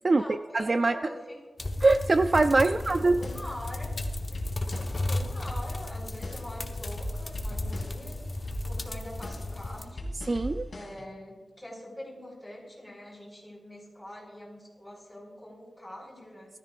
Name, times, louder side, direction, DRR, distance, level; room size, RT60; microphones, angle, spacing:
voice 1, 0.0-1.5 2.6-3.9 4.3-10.1 10.7-16.6, left 1 dB, 5° left, -3 dB, 4.6 m, -44 dB
voice 2, 0.5-1.0 1.8-3.2 10.3-10.7, right 3 dB, 40° right, 10 dB, 0.3 m, -22 dB
sound 1, 1.6-9.8, left 2 dB, 30° left, 1.1 m, -34 dB
sound 2, 3.2-5.1 5.5-6.6 6.9-8.1 8.5-11.1, equal, 55° left, 2.9 m, -39 dB
19.0 x 13.5 x 2.5 m, 1.2 s
wide cardioid pair, 130°, 0 cm